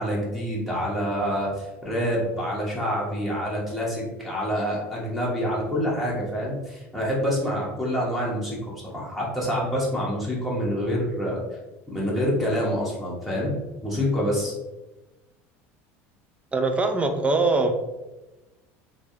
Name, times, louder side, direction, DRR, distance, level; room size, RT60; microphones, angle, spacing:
voice 1, 0.0-11.4 11.9-13.5 13.8-14.5, equal, ahead, -6 dB, 1.0 m, -27 dB
voice 2, 16.5-17.7, right 3 dB, 15° right, 6 dB, 0.4 m, -22 dB
3.2 x 2.3 x 2.7 m, 1.1 s
supercardioid pair, 95°, 7 cm